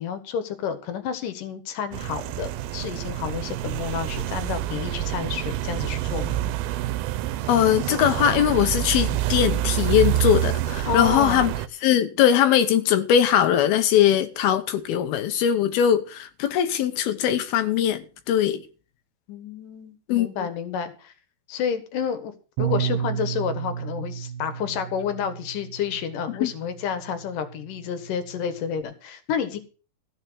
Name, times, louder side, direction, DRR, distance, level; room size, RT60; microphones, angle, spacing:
voice 1, 0.0-6.4 9.0-9.2 10.9-11.5 19.3-21.1 21.5-22.3 22.6-29.6, left 7 dB, 65° left, 2.8 m, -30 dB
sound 1, 1.9-11.7, right 13 dB, 75° right, 2.4 m, -27 dB
voice 2, 7.5-11.5 11.8-18.6 20.1-20.3 26.4-26.5, left 10 dB, 80° left, 2.6 m, -21 dB
Bass guitar, 22.6-28.8, right 9 dB, 60° right, 2.3 m, -33 dB
15.0 x 5.8 x 7.9 m
omnidirectional pair, 4.6 m